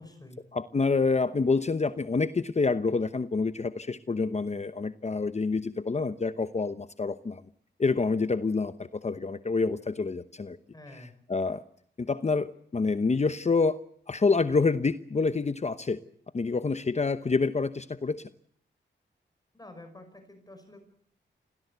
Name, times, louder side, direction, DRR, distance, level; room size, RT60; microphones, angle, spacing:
voice 1, 0.0-0.4 10.7-11.1 19.5-20.8, left 1 dB, 20° left, 7 dB, 5.3 m, -48 dB
voice 2, 0.5-7.4 7.8-10.6 11.0-11.6 12.0-13.8 14.1-16.0 16.3-18.3, left 4 dB, 35° left, 11 dB, 0.9 m, -27 dB
27.5 x 17.5 x 8.2 m, 0.64 s
wide cardioid pair, 100°, 20 cm